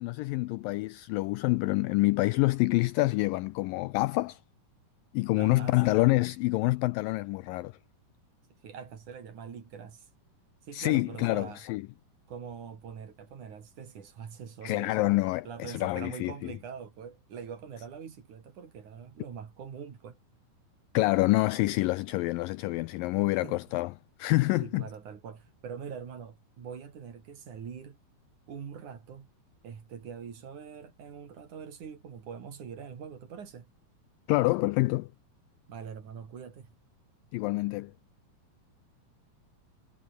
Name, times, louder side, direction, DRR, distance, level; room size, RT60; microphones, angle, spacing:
voice 1, 0.0-4.4 5.1-7.7 10.7-11.9 14.6-16.5 20.9-23.9 24.2-24.8 34.3-35.1 37.3-37.9, left 21 dB, 85° left, 2.0 m, -27 dB
voice 2, 5.4-6.0 8.6-10.1 10.6-11.6 12.3-15.2 15.4-20.2 23.4-23.6 24.6-28.0 28.5-29.3 29.6-33.7 35.7-36.7, right 7 dB, 55° right, 4.1 m, -43 dB
omnidirectional pair, 4.5 m